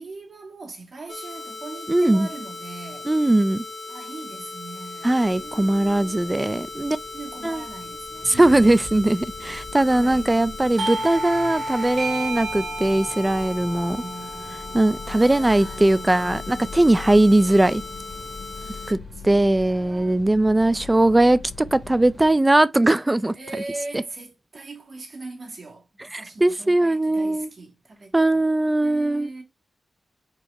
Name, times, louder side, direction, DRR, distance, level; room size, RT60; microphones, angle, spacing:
voice 1, 0.0-3.1 3.9-6.5 7.1-9.0 9.9-10.2 14.0-14.4 15.1-16.5 18.5-20.2 23.3-28.4 28.8-29.4, right 3 dB, 55° right, 2.8 m, -40 dB
sound 1, 1.1-18.9, left 3 dB, 45° left, 1.4 m, -38 dB
voice 2, 1.9-2.3 3.1-3.6 5.0-7.0 7.4-7.6 8.3-14.0 14.7-17.8 18.9-19.0 19.2-23.4 23.9-24.0 26.1-27.5 28.1-29.3, right 1 dB, 20° right, 0.4 m, -20 dB
sound 2, 5.2-22.3, left 3 dB, 5° left, 3.5 m, -42 dB
Doorbell, 10.8-16.1, right 2 dB, 75° right, 1.5 m, -32 dB
5.2 x 4.8 x 4.2 m
cardioid pair, 60°, 0 cm